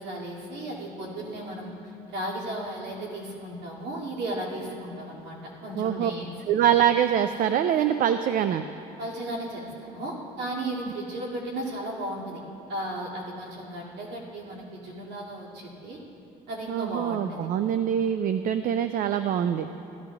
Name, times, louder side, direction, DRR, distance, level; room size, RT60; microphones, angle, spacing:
voice 1, 0.0-6.3 9.0-12.4 12.7-16.0 16.5-17.5, right 1 dB, 80° right, -4 dB, 2.5 m, -35 dB
voice 2, 5.8-6.1 6.5-8.6 16.7-19.7, right 9 dB, 55° right, 10 dB, 0.4 m, -24 dB
15.5 x 13.0 x 2.4 m, 2.8 s
cardioid pair, 110°, 17 cm